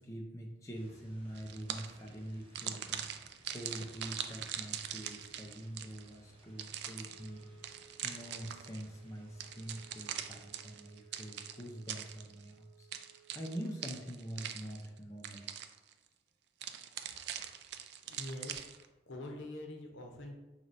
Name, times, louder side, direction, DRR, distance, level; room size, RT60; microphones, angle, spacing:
voice 1, 0.0-3.1 3.5-15.5, right 1 dB, 15° left, -1 dB, 0.5 m, -45 dB
sound 1, 0.7-10.5, right 1 dB, 30° right, 0.7 m, -63 dB
sound 2, 1.4-2.1 2.5-6.1 6.6-8.9 9.4-12.5 12.9-15.0 15.2-15.9 16.6-18.9, right 9 dB, 60° right, 0.3 m, -42 dB
Wind instrument woodwind instrument, 7.0-14.1, right 9 dB, 85° right, 1.3 m, -63 dB
voice 2, 18.0-20.4, left 1 dB, 80° left, 1 dB, 0.7 m, -45 dB
5.6 x 3.0 x 2.6 m, 1.1 s
head